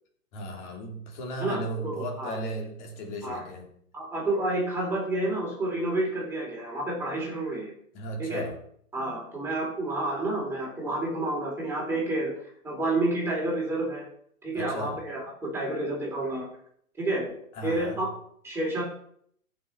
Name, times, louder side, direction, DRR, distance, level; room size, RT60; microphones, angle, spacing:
voice 1, 0.3-3.7 7.9-8.6 14.5-15.0 17.5-18.0, right 1 dB, 30° left, 3.3 m, -36 dB
voice 2, 1.4-2.4 3.2-3.4 3.9-7.7 8.2-8.4 8.9-12.3 12.6-14.0 14.4-16.5 17.0-17.3 17.6-18.1 18.4-18.8, right 2 dB, 5° right, 4.0 m, -29 dB
15.0 x 6.5 x 4.6 m
hypercardioid pair, 150°, 45 cm